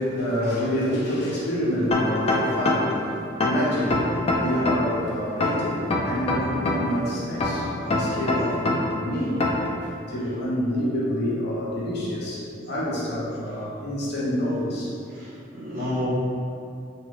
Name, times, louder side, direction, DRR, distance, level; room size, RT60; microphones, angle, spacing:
voice 1, 0.0-9.5 9.8-14.9, equal, 55° left, -7 dB, 0.7 m, -28 dB
sound 1, 1.9-3.0 3.4-5.0 5.4-7.0 7.4-9.0 9.4-9.7, left 2 dB, 30° left, 0.3 m, -24 dB
voice 2, 3.7-4.1 8.3-8.4 15.1-16.1, left 1 dB, 50° right, -10 dB, 0.9 m, -32 dB
2.8 x 2.3 x 3.2 m, 2.6 s
head